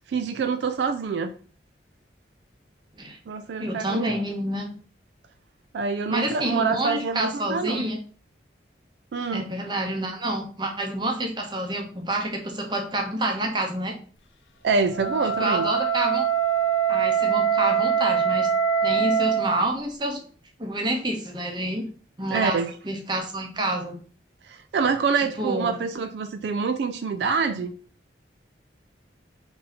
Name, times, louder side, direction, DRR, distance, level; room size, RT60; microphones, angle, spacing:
voice 1, 0.1-1.3 3.3-4.2 5.7-7.8 9.1-9.4 14.6-15.7 22.3-22.8 24.4-27.7, right 5 dB, 70° right, 9 dB, 0.3 m, -26 dB
voice 2, 3.6-4.7 6.1-8.0 9.3-13.9 15.4-16.3 16.9-18.5 18.8-20.2 20.6-21.8 22.2-22.6 22.8-24.0 25.2-25.7, right 1 dB, 25° right, 2 dB, 0.8 m, -28 dB
Wind instrument woodwind instrument, 14.9-19.5, right 7 dB, 90° left, 0.6 m, -23 dB
3.8 x 2.8 x 4.1 m, 0.42 s
head